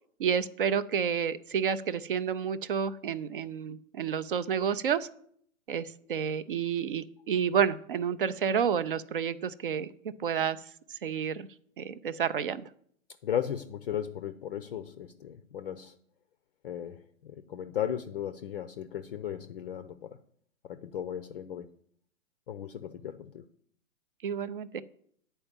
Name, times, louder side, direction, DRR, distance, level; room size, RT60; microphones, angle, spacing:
voice 1, 0.2-5.1 5.7-9.9 10.2-10.6 11.0-11.5 11.8-12.7 24.2-24.8, right 7 dB, 40° right, 15 dB, 0.4 m, -30 dB
voice 2, 13.2-16.0 16.6-20.2 20.6-21.7 22.5-23.4, left 9 dB, 40° left, 11 dB, 0.5 m, -36 dB
9.9 x 4.5 x 7.1 m, 0.65 s
hypercardioid pair, 140°, 42 cm